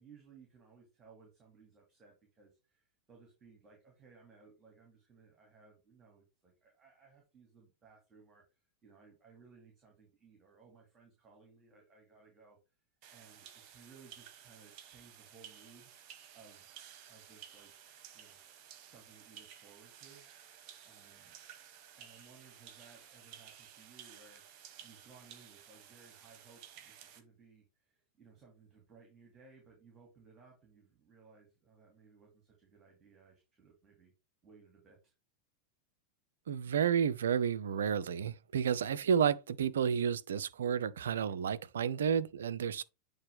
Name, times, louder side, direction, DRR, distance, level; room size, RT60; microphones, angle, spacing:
voice 1, 0.0-12.6 13.1-15.9 16.3-16.7 17.1-17.7 18.1-18.4 18.9-20.3 20.8-21.4 22.0-34.1 34.4-35.1, right 5 dB, 25° right, 2.6 m, -61 dB
sound 1, 13.0-27.2, right 9 dB, 40° right, 1.2 m, -55 dB
voice 2, 36.5-42.8, right 7 dB, 65° right, 0.4 m, -31 dB
8.7 x 3.4 x 3.6 m
figure-of-eight pair, 90°, 0 cm